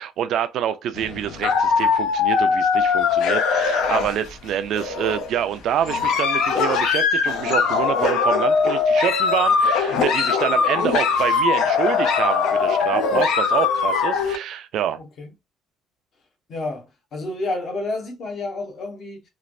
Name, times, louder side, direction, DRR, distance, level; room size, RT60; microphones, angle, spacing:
voice 1, 0.0-15.0, right 10 dB, 55° right, 0.4 m, -26 dB
sound 1, 0.9-4.5 4.7-5.3 5.8-14.4, left 5 dB, 75° left, 0.6 m, -21 dB
voice 2, 15.0-15.3 16.5-19.2, left 2 dB, 45° left, 0.9 m, -30 dB
3.1 x 2.4 x 2.5 m
cardioid pair, 165°, 0 cm